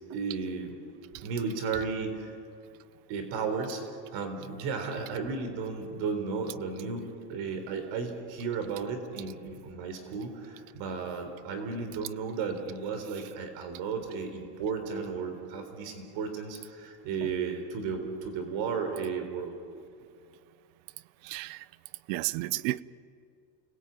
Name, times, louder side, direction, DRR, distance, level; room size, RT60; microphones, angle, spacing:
voice 1, 0.1-0.7 1.2-2.4 3.1-3.8 4.1-19.6, right 5 dB, 60° right, 6 dB, 3.9 m, -34 dB
voice 2, 21.2-21.6 22.1-22.8, right 18 dB, 85° right, 19 dB, 0.9 m, -31 dB
30.0 x 20.5 x 9.0 m, 2.3 s
cardioid pair, 165°, 49 cm